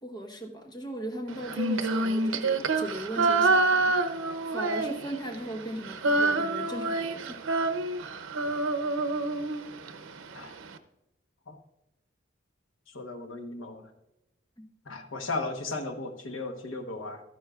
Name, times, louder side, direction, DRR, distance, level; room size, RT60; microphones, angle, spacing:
voice 1, 0.0-4.0 4.5-7.4 14.6-14.7, right 1 dB, 20° left, 2 dB, 1.1 m, -38 dB
Female singing, 1.4-5.4 5.6-9.9, right 3 dB, 90° right, 0.7 m, -27 dB
voice 2, 12.9-13.9 14.9-17.2, left 3 dB, 90° left, 5 dB, 1.1 m, -36 dB
13.0 x 10.0 x 2.4 m, 0.91 s
head